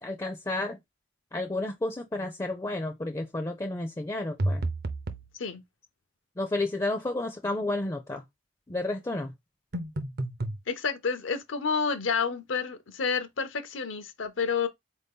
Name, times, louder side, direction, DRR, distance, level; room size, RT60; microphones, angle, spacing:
voice 1, 0.0-0.8 1.3-4.7 6.4-8.2 8.7-9.3, left 2 dB, 15° left, 0.4 m, -31 dB
sound 1, 4.4-5.3 9.7-10.6, right 1 dB, 50° right, 0.5 m, -30 dB
voice 2, 10.7-14.7, left 5 dB, 75° left, 0.6 m, -29 dB
4.1 x 2.7 x 3.5 m
head